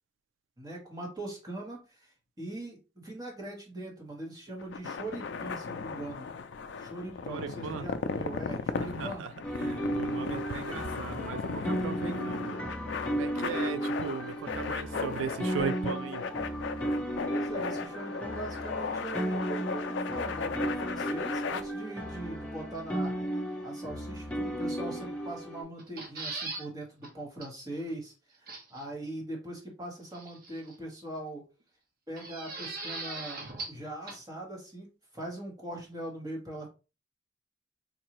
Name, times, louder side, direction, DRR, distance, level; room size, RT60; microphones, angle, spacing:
voice 1, 0.6-2.8 3.0-6.3 6.8-9.2 17.3-23.2 23.6-31.4 32.1-33.4 33.7-34.9 35.1-36.7, right 1 dB, 20° right, 1.2 m, -41 dB
sound 1, 4.6-21.6, left 5 dB, 65° left, 0.3 m, -36 dB
voice 2, 7.3-7.8 9.0-9.3 9.6-12.7 13.1-16.2, right 6 dB, 80° right, 0.3 m, -37 dB
sound 2, 9.4-25.6, right 1 dB, 5° left, 0.6 m, -34 dB
sound 3, 25.8-26.7 27.0-27.1 27.4-27.5 28.5-28.9 30.1-30.7 32.2-33.8 34.1-34.2, right 3 dB, 50° right, 0.8 m, -39 dB
3.8 x 2.6 x 3.0 m
head